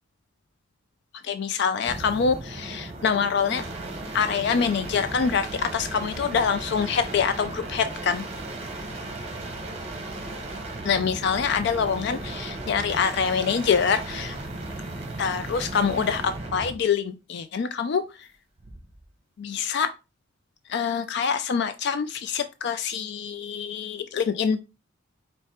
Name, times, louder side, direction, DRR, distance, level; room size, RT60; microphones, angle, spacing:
voice 1, 1.2-3.6 4.1-8.2 10.8-14.4 15.2-18.3 19.4-19.9 20.7-24.6, left 6 dB, 60° left, 10 dB, 0.3 m, -25 dB
sound 1, 1.7-16.8 18.6-19.0, right 2 dB, 30° right, 0.9 m, -36 dB
4.8 x 2.1 x 4.3 m, 0.28 s
head